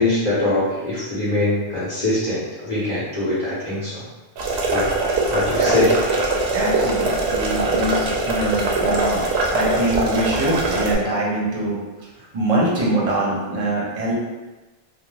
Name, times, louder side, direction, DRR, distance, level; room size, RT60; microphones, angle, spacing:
voice 1, 0.0-4.0 4.7-4.9 5.3-5.9, left 2 dB, 45° left, -10 dB, 0.9 m, -22 dB
sound 1, 4.4-10.9, right 2 dB, 90° right, 0.8 m, -22 dB
voice 2, 6.5-9.2 9.5-11.8 12.3-14.1, right 1 dB, 45° right, -4 dB, 0.7 m, -23 dB
2.5 x 2.1 x 3.1 m, 1.2 s
omnidirectional pair, 1.0 m